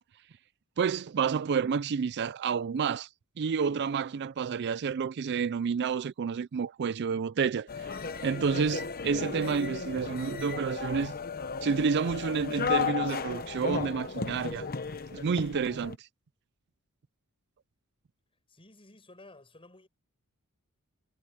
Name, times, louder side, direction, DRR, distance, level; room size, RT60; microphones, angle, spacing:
voice 1, 0.8-3.1 3.4-11.1 11.6-14.7 15.1-16.1, right 6 dB, 50° right, 0.4 m, -29 dB
sound 1, 7.7-16.0, left 5 dB, 40° left, 1.0 m, -34 dB
voice 2, 18.5-19.9, left 2 dB, 25° left, 7.6 m, -53 dB
head